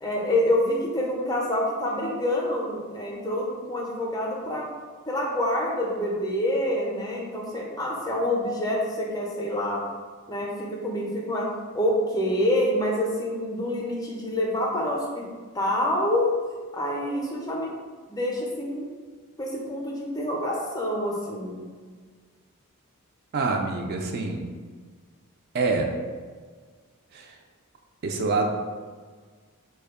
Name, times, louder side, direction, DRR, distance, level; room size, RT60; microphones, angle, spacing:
voice 1, 0.0-4.6 5.1-9.8 10.3-11.5 11.7-15.3 15.5-16.3 16.7-17.7 18.1-18.9 19.4-21.6, left 1 dB, 15° left, -2 dB, 0.5 m, -27 dB
voice 2, 23.3-24.5 25.5-25.9 27.1-27.3 28.0-28.5, right 3 dB, 45° right, 1 dB, 0.3 m, -26 dB
3.4 x 2.2 x 3.5 m, 1.5 s
head